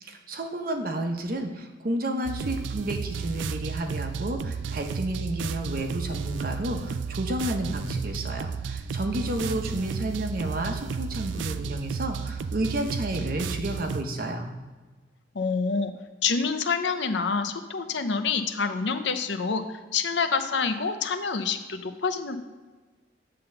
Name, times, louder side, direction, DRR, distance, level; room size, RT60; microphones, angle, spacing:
voice 1, 0.0-14.5, right 1 dB, 50° right, 4 dB, 0.9 m, -31 dB
sound 1, 2.3-14.0, right 5 dB, 85° right, 0.4 m, -33 dB
voice 2, 15.3-15.9 16.2-22.4, left 5 dB, 75° left, 8 dB, 0.7 m, -27 dB
8.5 x 3.8 x 6.7 m, 1.3 s
head